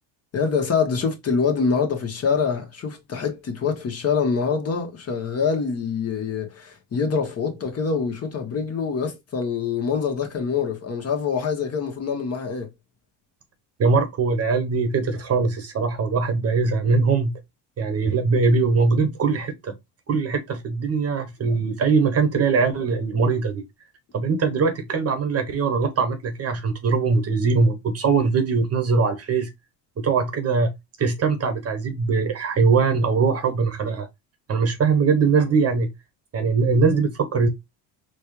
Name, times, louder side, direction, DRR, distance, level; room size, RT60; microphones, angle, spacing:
voice 1, 0.3-12.7, left 5 dB, 35° left, 1.3 m, -25 dB
voice 2, 13.8-17.3 17.8-19.7 20.1-23.6 24.1-29.5 30.0-30.7 31.0-34.1 34.5-35.9 36.3-37.5, right 4 dB, 35° right, 1.0 m, -21 dB
4.3 x 2.3 x 3.0 m
supercardioid pair, 95°, 42 cm